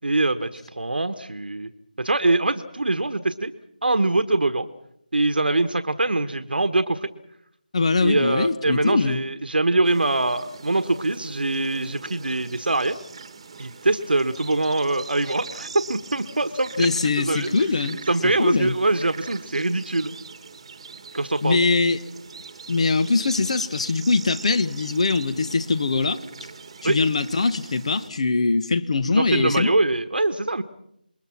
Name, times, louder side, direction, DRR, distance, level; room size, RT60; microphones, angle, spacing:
voice 1, 0.0-1.7 2.0-3.5 3.8-4.7 5.1-7.1 8.0-13.0 13.6-17.5 18.1-20.1 21.1-21.6 26.8-27.0 29.1-30.6, right 2 dB, 75° right, 1.4 m, -23 dB
voice 2, 7.7-9.2 16.8-18.0 18.4-18.7 21.4-22.0 22.7-26.2 26.8-29.7, left 3 dB, 40° left, 1.3 m, -22 dB
sound 1, 9.8-28.1, right 5 dB, 35° right, 1.4 m, -42 dB
27.5 x 22.0 x 6.0 m
figure-of-eight pair, 165°, 5 cm